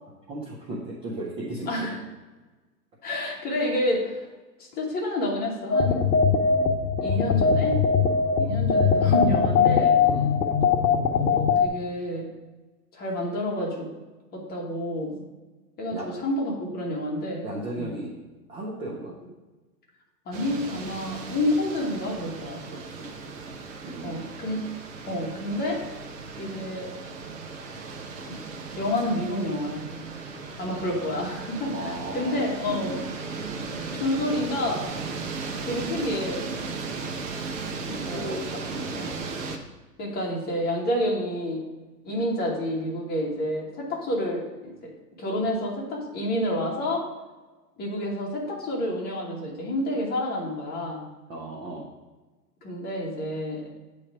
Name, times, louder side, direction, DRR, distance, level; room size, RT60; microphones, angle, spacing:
voice 1, 0.3-1.9 10.0-10.3 15.9-16.1 17.4-18.1 18.5-19.1 22.7-23.1 23.4-24.4 31.7-33.1 37.8-39.1 51.3-51.9, right 1 dB, 10° right, -3 dB, 0.5 m, -36 dB
voice 2, 1.7-2.0 3.0-4.2 4.6-6.0 7.0-7.8 8.4-10.0 11.1-12.3 12.9-13.9 14.3-15.2 15.8-17.4 17.8-17.9 20.2-22.6 24.0-24.7 25.1-25.8 26.4-26.9 28.7-30.0 30.6-32.9 33.9-34.9 35.6-36.5 38.1-38.4 38.9-39.1 40.0-41.6 42.0-44.9 45.2-47.0 47.8-51.0 52.6-53.7, left 1 dB, 20° left, -2 dB, 1.4 m, -29 dB
sound 1, 5.7-11.7, left 5 dB, 80° left, 0.8 m, -21 dB
sound 2, 20.3-39.6, right 4 dB, 50° right, 1.0 m, -36 dB
8.4 x 3.3 x 4.9 m, 1.2 s
hypercardioid pair, 120°, 49 cm